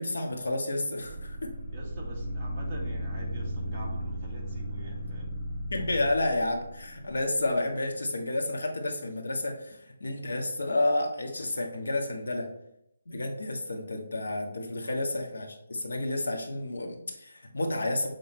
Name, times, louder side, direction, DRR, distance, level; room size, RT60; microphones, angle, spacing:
voice 1, 0.0-1.5 5.7-12.5 13.1-18.1, left 2 dB, 80° left, 2 dB, 1.6 m, -30 dB
sound 1, 1.0-7.2, equal, 10° left, 1.6 m, -35 dB
voice 2, 1.7-5.3 14.8-15.1, right 1 dB, 10° right, -8 dB, 1.5 m, -45 dB
7.9 x 3.7 x 4.4 m, 0.79 s
hypercardioid pair, 175°, 0 cm